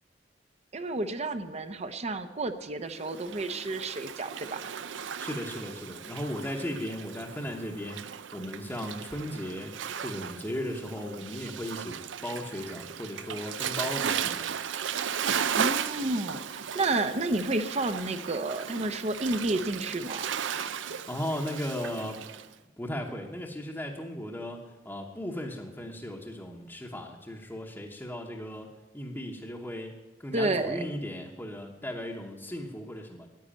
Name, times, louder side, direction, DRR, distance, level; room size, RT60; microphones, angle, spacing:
voice 1, 0.7-4.6 15.6-20.3 30.3-30.8, right 2 dB, 35° right, 9 dB, 0.7 m, -31 dB
Waves surf, 3.0-22.5, right 8 dB, 85° right, 0.5 m, -36 dB
voice 2, 5.2-8.0 8.3-14.5 21.1-22.2 22.8-33.3, left 1 dB, 10° left, -1 dB, 1.0 m, -36 dB
10.5 x 9.4 x 8.7 m, 1.1 s
head